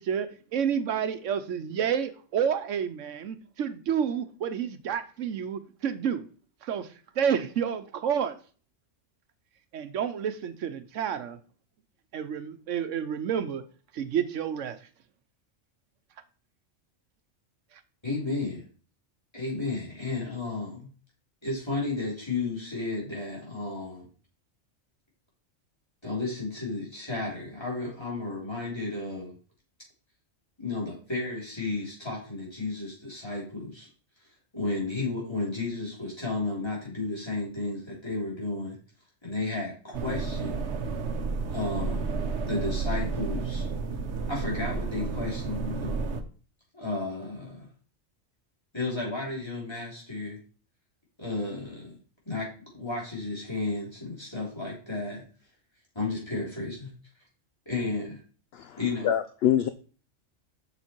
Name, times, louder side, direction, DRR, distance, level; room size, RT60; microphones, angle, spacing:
voice 1, 0.0-6.3 6.6-6.9 7.2-8.4 9.7-11.4 12.1-13.6 13.9-14.8, right 8 dB, 80° right, 1.1 m, -29 dB
voice 2, 18.0-18.6 19.3-20.9 21.4-24.1 26.0-29.4 30.6-33.9 34.5-38.8 39.2-40.6 41.5-42.2 42.5-43.7 44.3-46.1 46.7-47.7 48.7-50.4 51.2-51.9 52.3-55.3 55.9-56.9 57.7-58.2 58.8-59.1, left 3 dB, 20° left, 3.7 m, -33 dB
sound 1, 39.9-46.2, right 4 dB, 65° right, 1.2 m, -31 dB
voice 3, 59.0-59.7, left 10 dB, 65° left, 0.7 m, -25 dB
7.0 x 6.5 x 4.5 m
omnidirectional pair, 1.3 m